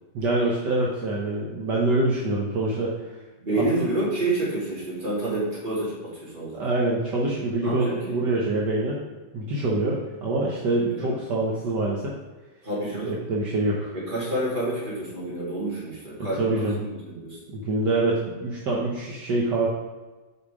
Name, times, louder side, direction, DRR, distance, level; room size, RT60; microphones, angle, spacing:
voice 1, 0.1-3.0 3.6-3.7 6.5-9.0 9.3-12.1 13.3-13.9 16.2-16.8 17.5-19.7, right 2 dB, 65° right, -4 dB, 1.6 m, -25 dB
voice 2, 3.4-5.9 6.2-6.6 7.6-8.2 10.8-11.2 12.6-13.2 13.9-17.4, right 2 dB, 25° right, -7 dB, 2.8 m, -28 dB
7.1 x 5.0 x 4.9 m, 1.2 s
omnidirectional pair, 2.1 m